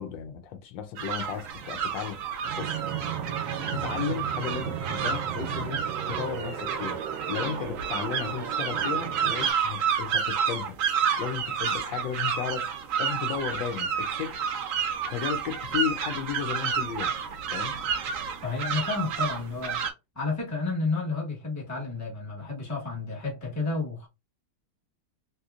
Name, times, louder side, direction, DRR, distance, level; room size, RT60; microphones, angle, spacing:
voice 1, 0.0-2.2 2.5-2.8 3.7-10.8 11.2-12.7 13.0-14.4 15.1-17.1 17.5-17.8, left 8 dB, 80° left, 1.3 m, -34 dB
sound 1, 1.0-19.9, right 7 dB, 65° right, 0.8 m, -30 dB
Fixed-wing aircraft airplane, 2.4-9.5, right 8 dB, 85° right, 1.4 m, -35 dB
voice 2, 18.4-19.8 20.1-24.1, left 3 dB, 10° left, 1.0 m, -31 dB
3.4 x 2.9 x 2.4 m
omnidirectional pair, 2.1 m